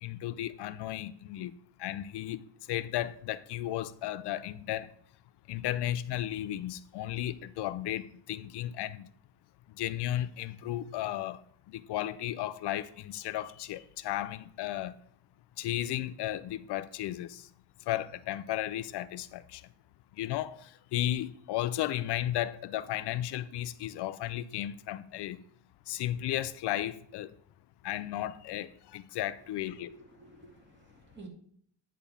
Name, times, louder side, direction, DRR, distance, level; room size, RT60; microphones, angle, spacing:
voice 1, 0.0-1.5 1.8-4.9 5.5-9.1 9.8-11.4 11.7-15.0 15.6-17.5 17.9-19.6 20.2-25.4 25.9-27.3 27.8-29.9, left 13 dB, 75° left, 0.5 m, -34 dB
voice 2, 29.6-31.3, right 2 dB, 25° right, 2.9 m, -52 dB
10.0 x 3.6 x 6.9 m
cardioid pair, 130°, 41 cm